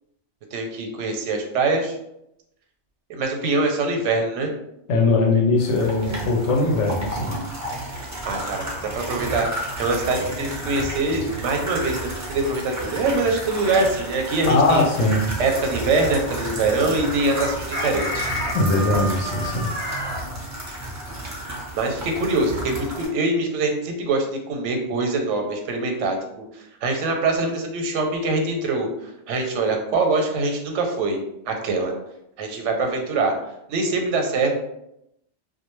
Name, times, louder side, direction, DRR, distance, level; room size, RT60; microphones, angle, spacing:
voice 1, 0.5-1.9 3.1-4.5 8.2-9.5 9.8-14.9 15.4-18.3 21.7-31.2 31.5-31.9 32.4-33.3 33.7-34.5, right 3 dB, 90° right, 3 dB, 0.9 m, -23 dB
voice 2, 4.9-7.4 14.5-15.2 18.5-19.7, left 2 dB, 80° left, 1 dB, 0.9 m, -20 dB
sound 1, 5.6-23.1, right 1 dB, 30° right, 0.3 m, -32 dB
Chicken rooster, 17.3-20.2, equal, 5° left, 0.6 m, -29 dB
2.4 x 2.1 x 3.0 m, 0.82 s
omnidirectional pair, 1.2 m